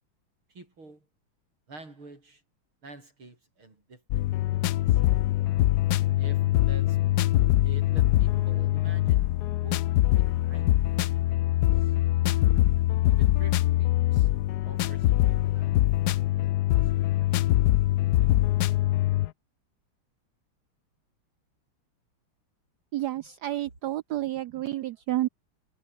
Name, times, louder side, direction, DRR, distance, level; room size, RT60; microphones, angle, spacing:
voice 1, 0.5-1.0 1.7-2.4 2.8-5.0 6.2-7.0 7.6-9.3 9.6-9.8 10.2-11.1 11.3-11.4 11.8-11.9 13.1-14.3 14.6-15.7 16.4-16.9 17.2-17.6 18.0-18.4, right 2 dB, 70° right, 7.2 m, -48 dB
sound 1, 4.1-19.3, left 15 dB, 80° left, 0.9 m, -23 dB
voice 2, 22.9-25.3, right 14 dB, 90° right, 0.8 m, -30 dB
omnidirectional pair, 2.4 m